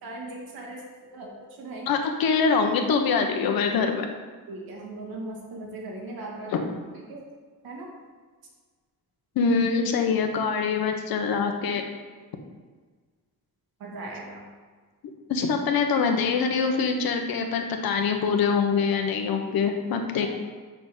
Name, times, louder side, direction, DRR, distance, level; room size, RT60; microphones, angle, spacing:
voice 1, 0.0-0.8 1.1-1.9 4.5-6.7 7.1-7.2 7.6-7.9 13.8-14.5 20.2-20.3, right 2 dB, 80° right, -2 dB, 2.4 m, -38 dB
voice 2, 1.9-4.1 6.5-6.6 9.3-11.8 15.3-20.3, left 5 dB, 80° left, 4 dB, 1.2 m, -24 dB
6.2 x 6.0 x 7.3 m, 1.5 s
cardioid pair, 165°, 35 cm